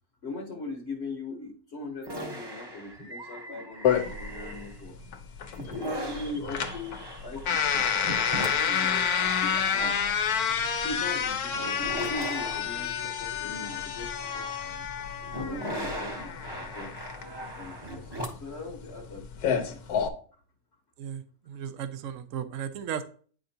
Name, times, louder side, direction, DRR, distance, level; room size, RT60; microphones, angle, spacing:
voice 1, 0.2-5.0 5.5-9.9 10.8-14.9 15.3-17.0 17.6-20.4, left 2 dB, 50° left, 2 dB, 1.2 m, -40 dB
sound 1, 2.0-5.0 5.4-18.6, right 1 dB, 20° right, 0.9 m, -40 dB
sound 2, 3.8-20.1, left 7 dB, 85° left, 1.2 m, -29 dB
voice 2, 21.0-23.0, right 8 dB, 65° right, 11 dB, 1.0 m, -36 dB
8.9 x 5.1 x 2.7 m, 0.43 s
omnidirectional pair, 1.6 m